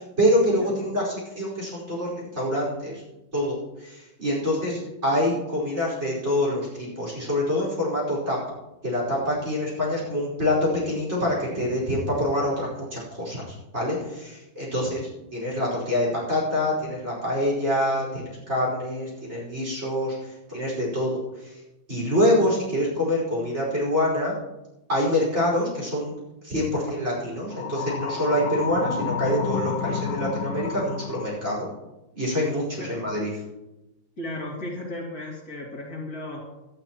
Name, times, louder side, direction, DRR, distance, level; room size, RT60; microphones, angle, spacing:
voice 1, 0.0-3.0 3.3-8.4 8.8-21.5 21.9-24.3 24.9-26.1 26.4-31.7 32.2-33.3, left 1 dB, 30° right, -5 dB, 5.3 m, -26 dB
sound 1, 27.5-31.5, left 6 dB, 80° left, 1.6 m, -30 dB
voice 2, 34.2-36.4, left 1 dB, 45° left, -3 dB, 2.6 m, -35 dB
18.0 x 12.0 x 3.0 m, 0.98 s
omnidirectional pair, 2.3 m